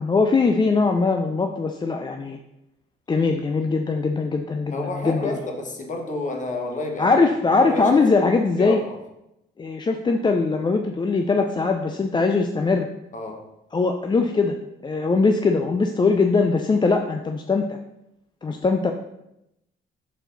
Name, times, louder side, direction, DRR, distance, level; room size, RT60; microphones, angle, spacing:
voice 1, 0.0-2.4 3.1-5.3 7.0-8.8 9.6-12.9 13.7-14.6 14.8-17.8 18.4-18.9, left 4 dB, 20° left, 5 dB, 0.4 m, -21 dB
voice 2, 4.7-8.0 8.6-9.0 13.1-13.5, left 2 dB, 40° left, 2 dB, 1.3 m, -30 dB
6.2 x 4.4 x 3.9 m, 0.86 s
cardioid pair, 90°, 20 cm